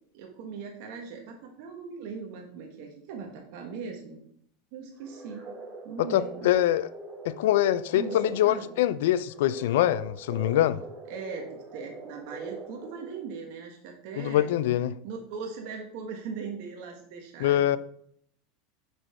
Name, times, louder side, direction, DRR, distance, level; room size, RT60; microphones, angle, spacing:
voice 1, 0.1-4.2 4.7-5.5 5.8-6.5 7.9-8.7 11.1-14.5 15.0-17.6, right 5 dB, 60° right, 1.3 m, -39 dB
sound 1, 5.0-13.4, right 3 dB, 35° right, 2.1 m, -43 dB
voice 2, 6.0-6.9 7.2-10.8 14.2-14.9 17.4-17.8, left 13 dB, 75° left, 0.4 m, -24 dB
6.3 x 5.3 x 4.3 m
hypercardioid pair, 100°, 0 cm